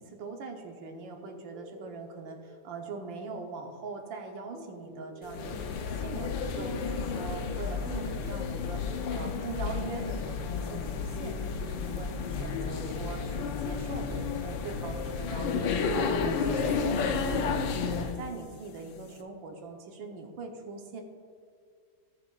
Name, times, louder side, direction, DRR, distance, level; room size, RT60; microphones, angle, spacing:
voice 1, 0.0-6.3 6.6-17.5 17.8-21.0, right 4 dB, 85° right, 3 dB, 1.8 m, -41 dB
sound 1, 0.9-15.6, left 1 dB, 65° left, 2.5 m, -51 dB
sound 2, 5.3-18.2, left 5 dB, 85° left, 1.5 m, -32 dB
17.5 x 6.8 x 2.4 m, 2.1 s
omnidirectional pair, 2.0 m